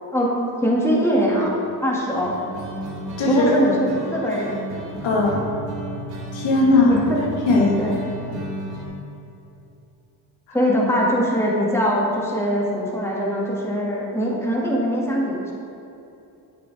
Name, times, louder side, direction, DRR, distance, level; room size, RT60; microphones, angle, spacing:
voice 1, 0.6-1.5 1.8-2.3 3.3-4.6 6.9-7.2 7.5-8.0 10.5-15.5, equal, 5° left, -4 dB, 2.2 m, -22 dB
sound 1, 2.0-8.8, equal, 75° right, 1.9 m, -33 dB
voice 2, 3.2-3.5 5.0-5.5 6.3-7.7, left 2 dB, 75° left, -3 dB, 1.8 m, -19 dB
9.5 x 7.7 x 3.5 m, 2.8 s
cardioid pair, 75°, 45 cm